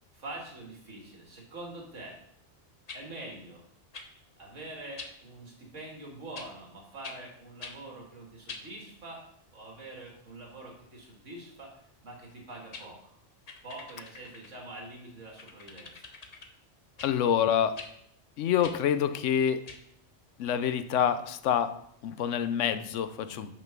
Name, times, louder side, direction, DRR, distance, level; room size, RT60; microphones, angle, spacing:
voice 1, 0.1-2.2 2.9-3.6 4.4-9.2 9.5-11.7 12.0-13.2 13.6-16.1 23.2-23.5, right 2 dB, 75° right, -1 dB, 2.2 m, -45 dB
sound 1, 2.9-3.0 3.9-4.1 5.0-5.1 6.3-6.5 7.0-7.2 7.6-7.8 8.5-8.7 12.3-12.4 12.7-12.9 13.5-14.5 15.4-16.5 17.0-17.1 17.7-17.9 18.6-18.8 19.7-19.8, left 4 dB, 40° left, 0.7 m, -44 dB
voice 2, 17.0-17.8 18.4-19.7 20.4-21.7 22.0-23.5, left 9 dB, 75° left, 11 dB, 0.9 m, -27 dB
6.0 x 5.5 x 6.0 m, 0.73 s
omnidirectional pair, 1.3 m